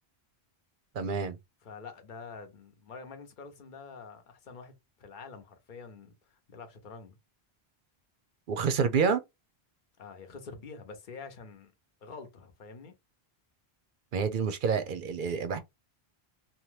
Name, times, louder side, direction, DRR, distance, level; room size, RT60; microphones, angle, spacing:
voice 1, 1.0-1.4 8.5-9.2 14.1-15.6, right 6 dB, 60° right, 0.6 m, -28 dB
voice 2, 1.6-7.2 10.0-11.7 12.0-12.9, left 4 dB, 55° left, 0.9 m, -47 dB
2.8 x 2.2 x 3.1 m
omnidirectional pair, 1.1 m